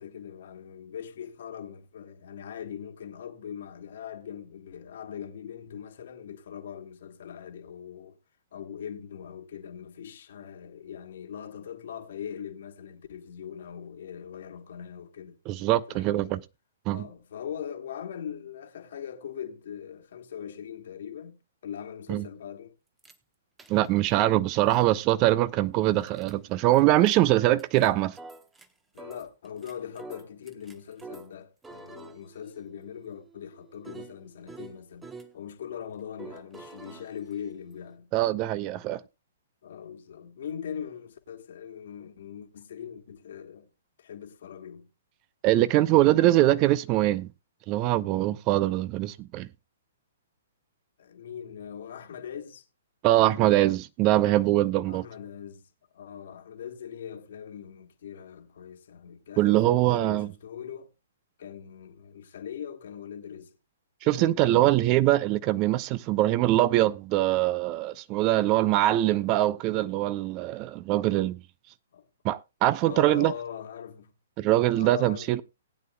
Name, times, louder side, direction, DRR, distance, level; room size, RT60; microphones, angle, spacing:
voice 1, 0.0-8.2 8.5-15.4 15.9-16.3 16.9-22.8 28.9-38.1 39.6-43.7 44.0-44.9 51.0-52.6 54.9-60.9 61.4-63.6 64.0-64.8 71.9-72.1 72.8-74.1 74.7-75.4, left 8 dB, 55° left, 1.5 m, -41 dB
voice 2, 15.5-16.4 16.9-17.1 22.1-22.2 23.7-28.2 38.1-39.0 45.4-47.3 47.7-49.5 53.0-55.1 59.4-60.3 64.0-71.4 72.2-73.3 74.4-75.4, right 15 dB, 30° right, 0.5 m, -23 dB
sound 1, 23.0-23.1 23.6-24.1 24.7-24.8 26.0-26.3 26.7-26.8 27.1-27.2 27.6-28.7 29.0-31.3 31.6-35.3 36.2-38.0, right 3 dB, 10° right, 1.0 m, -47 dB
18.5 x 9.2 x 2.2 m
figure-of-eight pair, 115°, 0 cm